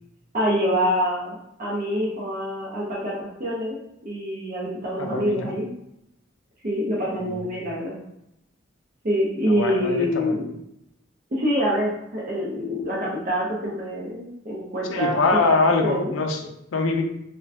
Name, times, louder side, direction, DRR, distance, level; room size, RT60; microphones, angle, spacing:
voice 1, 0.3-5.7 6.6-7.9 9.0-10.5 11.3-15.4 15.8-16.1, equal, 45° right, -6 dB, 0.5 m, -26 dB
voice 2, 5.0-5.5 7.2-7.4 9.5-10.3 14.9-17.0, left 3 dB, 85° left, 3 dB, 0.4 m, -23 dB
2.4 x 2.2 x 3.3 m, 0.82 s
head